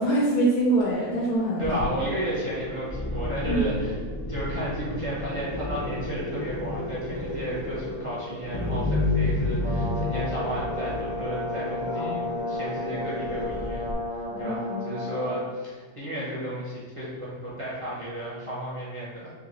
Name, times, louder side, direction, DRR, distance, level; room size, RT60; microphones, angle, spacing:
voice 1, 0.0-1.8 3.5-3.6 11.9-12.2 14.3-15.0, right 1 dB, 85° left, -5 dB, 1.2 m, -25 dB
sound 1, 1.6-13.9, left 2 dB, 60° left, 0.3 m, -31 dB
voice 2, 1.6-4.0 4.3-13.9 14.4-19.3, right 1 dB, 35° right, -8 dB, 0.5 m, -33 dB
Brass instrument, 9.6-15.4, left 2 dB, 70° right, 1.5 m, -33 dB
3.7 x 2.8 x 3.0 m, 1.4 s
omnidirectional pair, 1.7 m